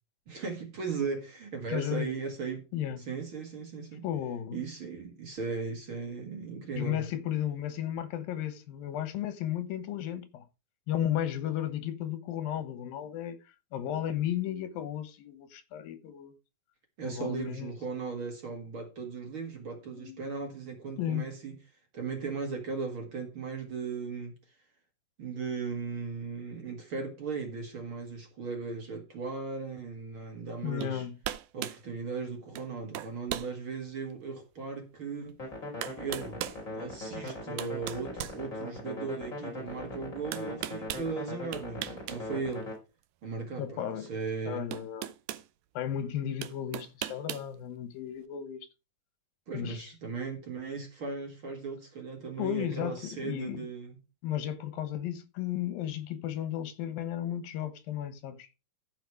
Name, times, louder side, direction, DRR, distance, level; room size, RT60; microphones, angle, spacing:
voice 1, 0.3-2.7 3.0-4.1 4.5-7.1 17.0-21.5 21.9-24.4 25.2-31.1 31.5-35.4 35.9-36.5 36.7-42.7 43.2-44.7 49.5-54.0, right 5 dB, 45° right, 2.3 m, -37 dB
voice 2, 1.7-2.1 2.7-3.1 4.0-4.6 6.8-10.5 10.9-13.4 13.7-16.3 17.1-17.7 20.0-20.2 21.0-21.3 30.6-31.2 43.6-44.1 44.5-45.1 45.8-48.6 49.5-49.8 52.4-53.6 54.2-58.5, left 10 dB, 85° left, 3.0 m, -34 dB
sound 1, 30.8-31.0 31.2-31.8 32.6-32.7 32.9-33.5 34.1-34.2 35.3-35.4 35.8-36.6 37.3-39.0 40.3-41.1 41.5-42.2 42.5-42.7 44.1-44.2 44.7-45.5 46.4-47.5, right 13 dB, 75° right, 2.1 m, -38 dB
sound 2, 35.4-42.8, left 2 dB, 20° left, 4.2 m, -40 dB
14.5 x 5.2 x 4.8 m
omnidirectional pair, 4.1 m